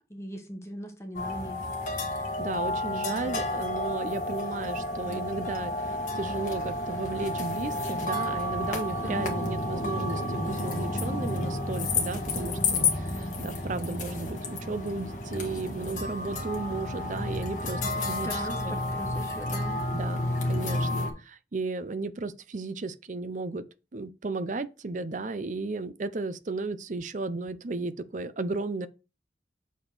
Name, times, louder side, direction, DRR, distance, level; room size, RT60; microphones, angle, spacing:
voice 1, 0.1-1.6 2.9-3.4 9.0-9.4 17.7-19.8, right 1 dB, 15° left, 1.1 m, -40 dB
sound 1, 1.2-21.1, left 2 dB, 45° left, 1.7 m, -31 dB
voice 2, 2.4-17.8 18.1-18.4 18.7-18.8 19.9-23.6 23.9-28.9, right 3 dB, 45° right, 0.6 m, -34 dB
7.1 x 4.3 x 4.4 m
head